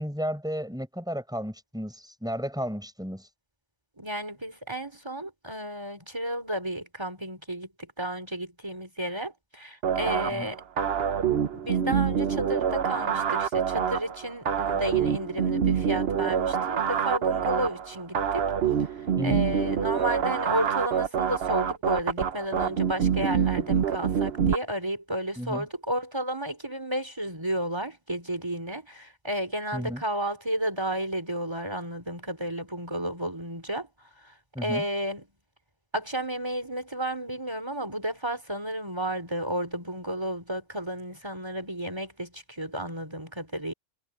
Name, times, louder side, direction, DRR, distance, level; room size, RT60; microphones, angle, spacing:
voice 1, 0.0-3.3 10.3-10.5 19.2-19.4 25.4-25.7 29.7-30.0 34.5-34.9, equal, 5° right, 5.9 m, -33 dB
voice 2, 4.0-7.7 8.0-10.6 11.6-18.5 19.2-33.9 34.6-35.2 35.9-43.7, right 1 dB, 20° right, 3.7 m, -32 dB
sound 1, 9.8-24.6, right 7 dB, 55° right, 1.1 m, -26 dB
omnidirectional pair, 1.3 m